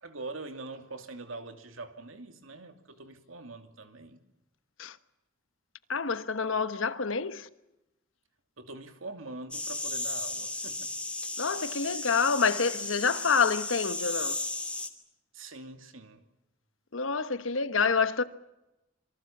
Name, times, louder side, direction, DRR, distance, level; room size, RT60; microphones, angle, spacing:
voice 1, 0.0-4.2 8.6-10.9 15.3-16.2, right 3 dB, 90° right, 2.8 m, -43 dB
voice 2, 5.9-7.5 11.4-14.4 16.9-18.2, left 5 dB, 80° left, 1.3 m, -27 dB
sound 1, 9.5-14.9, left 2 dB, 5° left, 2.5 m, -35 dB
27.0 x 23.5 x 7.3 m
head